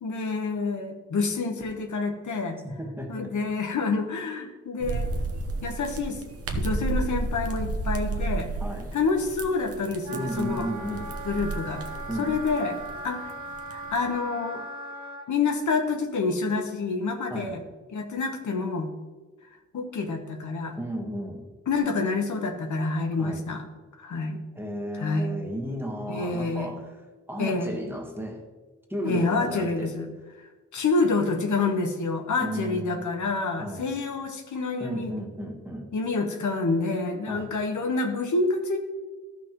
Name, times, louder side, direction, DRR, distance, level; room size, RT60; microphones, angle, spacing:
voice 1, 0.0-2.6 3.1-5.1 5.6-6.2 6.5-8.5 8.9-10.7 11.2-11.8 12.2-12.8 13.0-13.3 13.7-14.6 15.3-17.6 17.9-18.9 19.7-20.8 21.7-23.6 24.0-24.4 25.0-25.3 26.1-26.7 27.4-27.7 29.0-30.1 30.4-30.5 30.7-35.1 35.9-38.8, left 3 dB, 85° left, 4 dB, 1.1 m, -27 dB
voice 2, 2.8-3.2 8.6-8.9 10.1-11.2 12.1-12.4 17.3-17.6 20.8-21.4 23.2-23.4 24.5-28.4 28.9-29.9 32.4-33.0 33.6-33.9 34.8-35.9 37.3-37.5, equal, 10° right, 1 dB, 1.3 m, -34 dB
sound 1, 4.8-14.1, right 3 dB, 55° right, 1.0 m, -32 dB
Wind instrument woodwind instrument, 10.0-15.2, right 2 dB, 80° right, 1.6 m, -38 dB
13.5 x 5.8 x 3.0 m, 1.3 s
wide cardioid pair, 110°, 29 cm